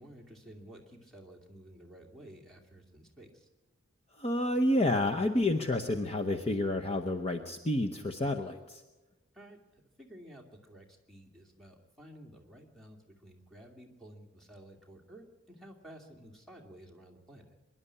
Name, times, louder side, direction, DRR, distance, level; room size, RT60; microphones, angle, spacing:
voice 1, 0.0-3.5 9.3-17.6, right 1 dB, ahead, -2 dB, 2.4 m, -53 dB
voice 2, 4.2-8.8, left 1 dB, 30° left, 6 dB, 0.8 m, -29 dB
24.5 x 11.0 x 9.8 m, 1.1 s
head